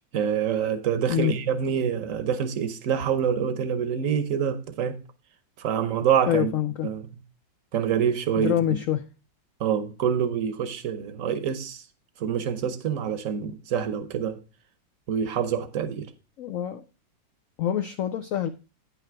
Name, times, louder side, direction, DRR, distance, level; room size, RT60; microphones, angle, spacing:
voice 1, 0.1-5.0 5.6-6.5 6.8-7.0 7.7-8.8 9.6-11.8 12.2-14.4 15.1-16.1, right 8 dB, 55° right, 1.0 m, -26 dB
voice 2, 6.3-6.9 8.4-9.1 16.4-16.8 17.6-18.5, left 11 dB, 80° left, 0.7 m, -25 dB
9.3 x 5.9 x 4.5 m
omnidirectional pair, 2.0 m